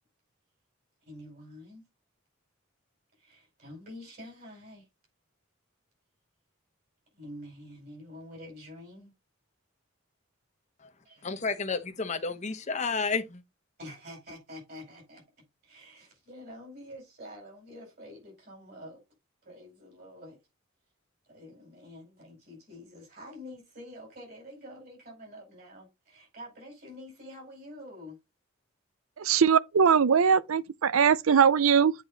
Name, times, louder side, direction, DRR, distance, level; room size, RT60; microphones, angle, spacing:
voice 1, 1.0-1.8 3.2-4.9 7.1-9.1 11.0-11.4 13.8-15.2 15.6-19.0 19.4-20.4 21.2-28.2, left 1 dB, 50° right, 4.9 m, -47 dB
voice 2, 11.2-13.4, left 4 dB, 35° left, 0.9 m, -31 dB
voice 3, 29.2-31.9, right 7 dB, 80° right, 0.5 m, -21 dB
8.2 x 4.4 x 3.9 m
head